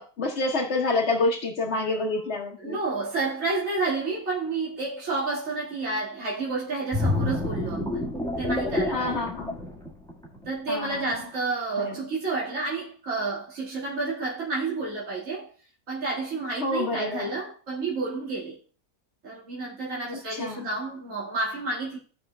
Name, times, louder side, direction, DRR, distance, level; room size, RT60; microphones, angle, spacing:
voice 1, 0.0-2.8 8.9-9.6 10.7-11.1 11.8-12.0 16.6-17.3 20.3-20.7, left 2 dB, 50° left, 1.2 m, -28 dB
voice 2, 2.6-8.0 8.4-9.2 10.5-15.5 15.9-18.6 19.2-22.0, right 3 dB, 60° right, 2.3 m, -30 dB
sound 1, 6.9-10.5 10.9-11.1, left 1 dB, 5° left, 1.6 m, -28 dB
16.0 x 5.6 x 2.2 m
omnidirectional pair, 1.6 m